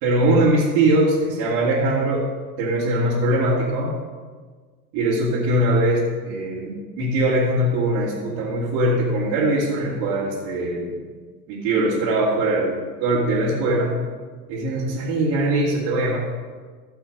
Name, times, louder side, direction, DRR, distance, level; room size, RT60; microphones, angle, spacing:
voice 1, 0.0-2.3 2.6-3.9 4.9-10.9 11.5-14.0 14.5-16.2, right 1 dB, 50° right, -6 dB, 2.4 m, -21 dB
13.5 x 6.9 x 5.1 m, 1.5 s
figure-of-eight pair, 75°, 44 cm